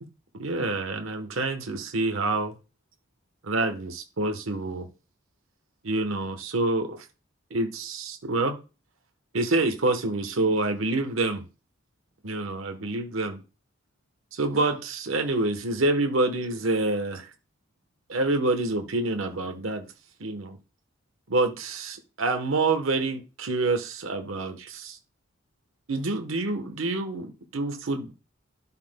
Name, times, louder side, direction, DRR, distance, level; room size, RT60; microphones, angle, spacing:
voice 1, 0.4-2.5 3.4-4.9 5.8-7.0 7.5-8.5 9.3-11.4 12.2-13.4 14.3-17.3 18.1-19.9 20.2-20.6 21.3-25.0 25.9-28.1, right 2 dB, 80° right, 1.1 m, -27 dB
12.0 x 5.7 x 2.2 m
head